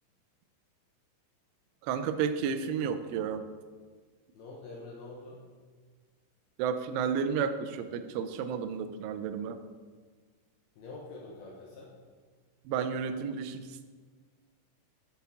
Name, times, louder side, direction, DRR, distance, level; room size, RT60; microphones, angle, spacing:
voice 1, 1.8-3.4 6.6-9.6 12.7-13.9, right 7 dB, 85° right, 10 dB, 3.0 m, -32 dB
voice 2, 4.3-5.5 10.8-11.9, left 2 dB, 80° left, -3 dB, 2.3 m, -45 dB
9.8 x 7.2 x 3.6 m, 1.5 s
omnidirectional pair, 5.6 m